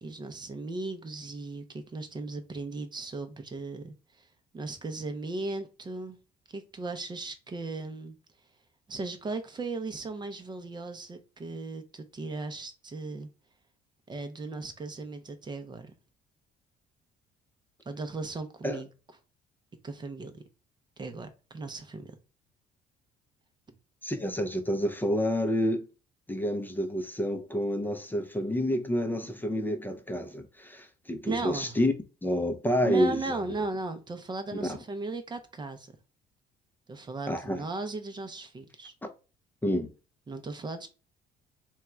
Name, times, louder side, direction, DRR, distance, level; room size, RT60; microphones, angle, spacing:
voice 1, 0.0-4.3 4.5-6.2 6.5-8.2 8.9-13.3 14.1-15.9 17.9-18.9 19.8-20.4 21.0-22.1 31.3-31.7 32.8-35.9 36.9-38.9 40.3-40.9, right 3 dB, 25° right, 0.7 m, -37 dB
voice 2, 24.0-25.9 26.3-31.9 32.2-33.4 34.6-34.8 37.3-37.6 39.6-39.9, equal, 10° left, 0.6 m, -29 dB
3.6 x 2.3 x 4.3 m
cardioid pair, 110°, 17 cm